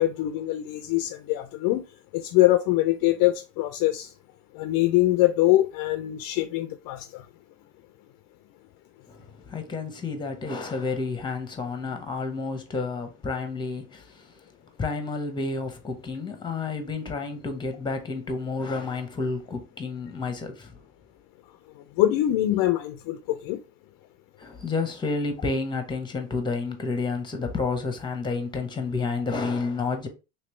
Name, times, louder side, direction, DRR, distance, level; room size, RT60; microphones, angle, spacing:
voice 1, 0.0-1.8 2.1-4.1 4.6-7.2 22.0-23.6, left 15 dB, 55° left, 0.5 m, -23 dB
voice 2, 9.1-14.3 14.8-20.7 24.4-30.1, left 4 dB, 10° left, 0.8 m, -30 dB
3.1 x 3.0 x 3.1 m
supercardioid pair, 95°, 41 cm